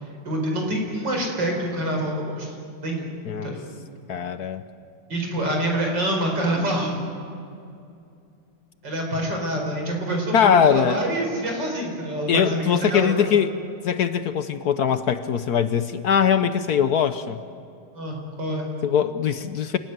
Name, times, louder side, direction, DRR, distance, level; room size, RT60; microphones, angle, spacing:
voice 1, 0.2-2.6 2.8-3.1 3.4-3.6 5.1-6.9 8.8-13.3 17.9-18.7, right 1 dB, 60° right, 1 dB, 5.6 m, -26 dB
voice 2, 4.1-4.6 10.3-11.0 12.3-13.5 13.8-17.4 18.8-19.8, left 8 dB, 60° left, 11 dB, 1.1 m, -21 dB
28.5 x 18.5 x 9.4 m, 2.5 s
omnidirectional pair, 2.2 m